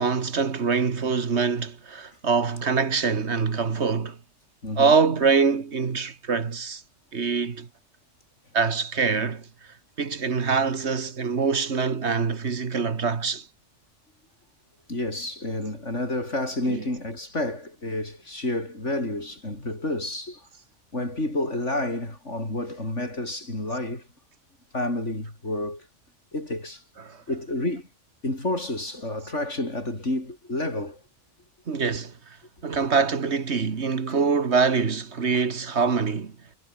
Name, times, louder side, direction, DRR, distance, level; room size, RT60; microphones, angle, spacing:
voice 1, 0.0-4.2 4.8-6.8 7.1-7.7 8.5-9.5 10.0-13.5 16.7-16.8 27.0-27.2 31.7-32.4 32.6-36.4, right 5 dB, 65° right, 1.9 m, -24 dB
voice 2, 4.6-5.0 14.9-20.5 20.9-24.0 24.7-25.9 26.3-26.8 27.3-27.9 28.2-31.0 35.3-35.4, left 1 dB, 75° left, 7.5 m, -30 dB
omnidirectional pair, 1.2 m